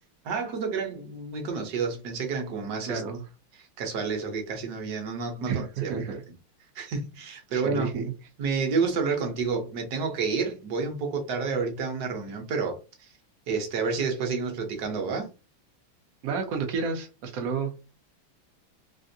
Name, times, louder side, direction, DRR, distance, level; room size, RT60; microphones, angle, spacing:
voice 1, 0.2-3.0 3.5-5.9 6.7-7.9 8.4-13.1 13.5-15.3, right 5 dB, 60° right, 1.1 m, -30 dB
voice 2, 2.9-3.2 5.5-6.2 7.5-8.1 16.2-17.7, right 5 dB, 80° right, 0.8 m, -30 dB
3.4 x 2.4 x 2.6 m
omnidirectional pair, 2.4 m